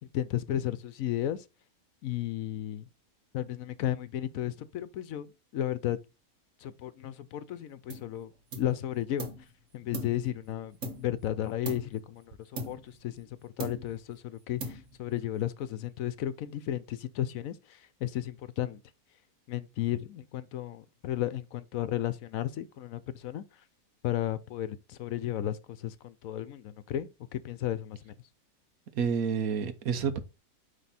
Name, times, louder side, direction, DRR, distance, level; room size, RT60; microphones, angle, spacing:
voice 1, 0.1-1.5 2.0-2.9 3.3-6.0 6.6-8.3 8.6-9.3 9.7-18.8 19.5-23.6 24.0-28.2, left 12 dB, 75° left, 1.0 m, -34 dB
sound 1, 7.9-8.2 8.5-9.5 9.9-11.3 11.6-12.1 12.6-13.3 13.6-14.1 14.6-15.2, right 1 dB, 60° right, 1.6 m, -40 dB
voice 2, 28.9-30.2, right 6 dB, 75° right, 1.3 m, -29 dB
9.2 x 3.5 x 4.1 m
omnidirectional pair, 1.5 m